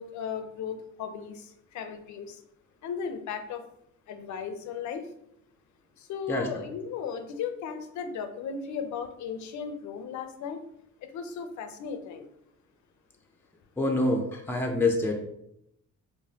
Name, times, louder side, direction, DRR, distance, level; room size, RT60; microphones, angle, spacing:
voice 1, 0.0-1.5 1.7-2.4 2.8-3.6 4.1-5.0 6.1-10.6 11.0-12.3, left 6 dB, 70° left, 7 dB, 0.6 m, -36 dB
voice 2, 6.3-6.6 13.8-15.2, left 2 dB, 5° left, 2 dB, 0.5 m, -26 dB
4.9 x 2.1 x 2.8 m, 0.76 s
cardioid pair, 90°, 30 cm